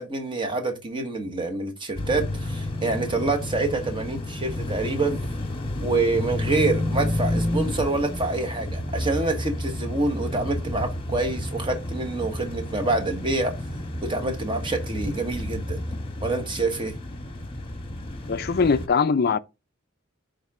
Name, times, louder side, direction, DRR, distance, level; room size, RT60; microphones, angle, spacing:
voice 1, 0.0-5.2 5.8-13.5 14.0-15.8 16.2-17.0, right 3 dB, 25° right, 1.2 m, -26 dB
sound 1, 1.9-18.9, left 1 dB, 25° left, 1.2 m, -31 dB
voice 2, 18.3-19.4, left 5 dB, 50° left, 0.4 m, -21 dB
10.5 x 3.9 x 3.6 m
head